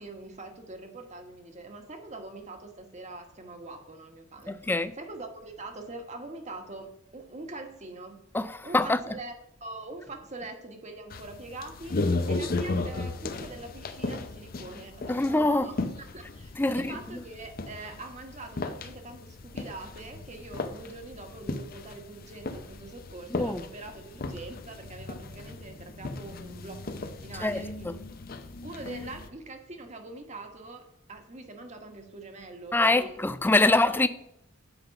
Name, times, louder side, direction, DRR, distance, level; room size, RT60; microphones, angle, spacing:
voice 1, 0.0-8.2 8.6-9.3 9.6-15.8 16.1-28.0 28.6-33.2, right 2 dB, 35° right, 1.3 m, -43 dB
voice 2, 4.5-4.9 8.3-9.0 15.1-15.7 16.6-17.2 23.3-23.6 27.4-28.0 32.7-34.1, left 2 dB, 10° left, 0.4 m, -25 dB
sound 1, 11.1-29.3, left 2 dB, 45° left, 0.6 m, -36 dB
8.1 x 5.1 x 5.8 m
head